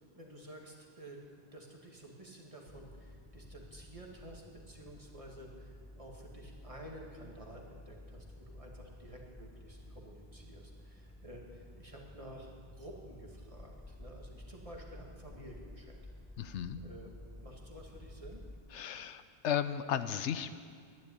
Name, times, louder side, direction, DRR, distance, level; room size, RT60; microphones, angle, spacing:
voice 1, 0.1-1.2 1.5-16.0 16.7-17.1 17.4-18.4, right 1 dB, 30° right, -1 dB, 2.2 m, -51 dB
sound 1, 2.7-18.6, left 1 dB, 10° left, 0.5 m, -52 dB
voice 2, 16.4-16.8 18.7-20.6, left 9 dB, 85° left, 12 dB, 1.0 m, -35 dB
13.0 x 10.5 x 9.8 m, 2.1 s
omnidirectional pair, 1.2 m